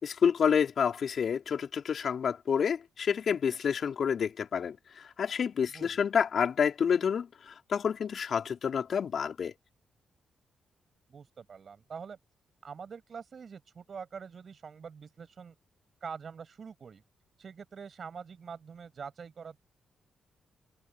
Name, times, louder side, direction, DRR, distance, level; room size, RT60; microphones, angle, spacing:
voice 1, 0.0-9.5, left 7 dB, 60° left, 4.8 m, -29 dB
voice 2, 5.7-6.0 11.1-12.2 12.6-15.5 16.0-17.0 17.4-19.6, right 6 dB, 55° right, 6.7 m, -45 dB
supercardioid pair, 50°, 0 cm